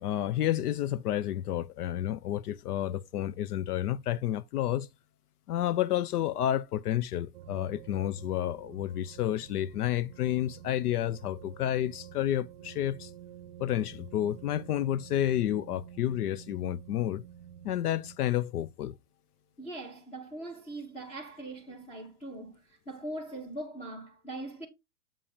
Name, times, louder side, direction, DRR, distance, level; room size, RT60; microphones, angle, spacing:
voice 1, 0.0-4.9 5.5-13.1 13.6-17.2 17.6-19.0, left 12 dB, 75° left, 0.5 m, -30 dB
sound 1, 7.3-18.2, right 10 dB, 45° right, 0.6 m, -49 dB
voice 2, 19.6-24.7, right 2 dB, 10° left, 0.8 m, -41 dB
7.5 x 2.8 x 5.0 m
hypercardioid pair, 135°, 47 cm